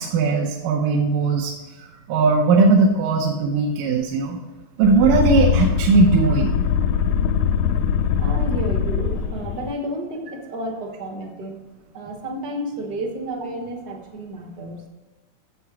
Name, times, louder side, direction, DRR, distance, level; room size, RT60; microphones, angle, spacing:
voice 1, 0.0-1.6 2.1-4.4 4.8-6.6, right 4 dB, 80° right, 0 dB, 2.3 m, -18 dB
sound 1, 4.8-9.7, left 7 dB, 80° left, 1.7 m, -22 dB
voice 2, 8.2-11.6 11.9-14.8, right 1 dB, 60° right, 3 dB, 1.0 m, -31 dB
10.5 x 7.2 x 4.8 m, 1.2 s
omnidirectional pair, 3.8 m